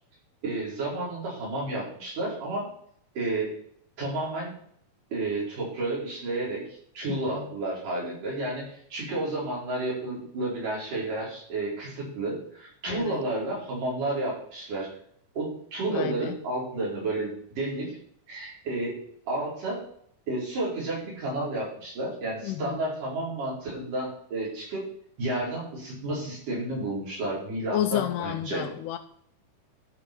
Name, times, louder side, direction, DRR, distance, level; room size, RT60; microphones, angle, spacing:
voice 1, 0.4-2.7 3.2-3.5 4.0-4.5 5.1-6.6 6.9-14.9 15.4-17.9 18.3-19.0 19.3-19.8 20.3-24.9 25.2-28.6, right 2 dB, 85° right, -5 dB, 6.3 m, -31 dB
voice 2, 7.1-7.4 12.9-13.2 15.9-16.4 22.4-22.9 27.7-29.0, left 12 dB, 90° left, 5 dB, 2.2 m, -31 dB
13.0 x 5.9 x 6.0 m, 0.63 s
omnidirectional pair, 3.6 m